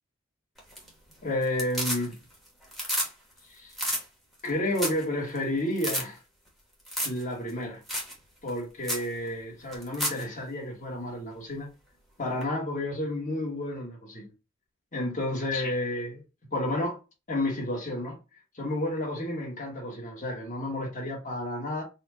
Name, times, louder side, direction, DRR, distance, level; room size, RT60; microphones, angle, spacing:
sound 1, 0.6-1.1 1.4-2.3 2.6-3.1 3.4-3.5 3.7-4.0 4.4-4.5 4.7-5.0 5.3-5.4 5.8-6.0 6.9-7.2 7.5-7.6 7.9-8.1 8.5-8.6 8.8-9.1 9.7-10.2 12.4-12.5, equal, ahead, 1.0 m, -30 dB
voice 1, 1.2-2.1 3.5-3.7 4.4-6.2 7.0-7.8 8.4-11.7 12.2-14.3 14.9-16.2 16.5-17.0 17.3-18.2 18.5-21.8, left 1 dB, 35° left, 1.2 m, -31 dB
4.2 x 2.3 x 2.7 m
head